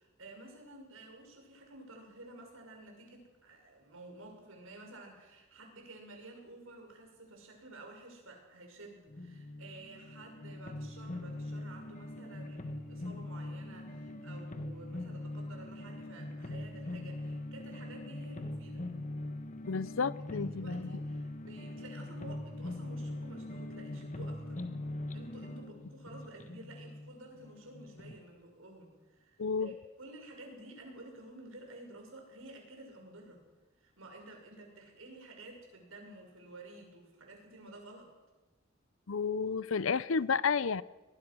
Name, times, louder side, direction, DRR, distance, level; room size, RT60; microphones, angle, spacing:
voice 1, 0.0-18.8 20.3-24.6 25.1-33.4 33.8-38.1, right 2 dB, 80° right, 2 dB, 6.3 m, -52 dB
sound 1, 9.1-28.2, left 1 dB, 40° left, 1.4 m, -42 dB
voice 2, 19.7-20.9 29.4-29.7 39.1-40.8, left 5 dB, 70° left, 19 dB, 0.6 m, -31 dB
23.5 x 19.5 x 6.3 m, 1.2 s
head